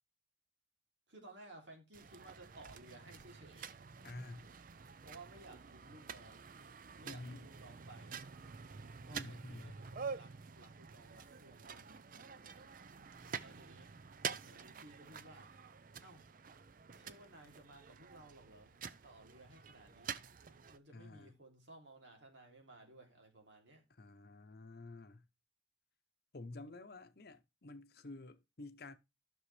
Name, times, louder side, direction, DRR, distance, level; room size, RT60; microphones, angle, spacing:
voice 1, 1.1-3.8 5.0-6.5 7.0-8.2 9.1-12.7 13.4-13.9 14.4-15.5 16.0-16.3 16.9-20.2 20.7-23.8, right 2 dB, 75° right, 3.0 m, -58 dB
sound 1, 1.9-20.8, right 6 dB, 45° right, 0.5 m, -49 dB
voice 2, 4.0-4.5 7.0-7.4 9.1-9.8 20.9-21.3 24.0-25.2 26.3-29.0, left 2 dB, 55° left, 0.8 m, -50 dB
12.5 x 6.2 x 3.3 m
head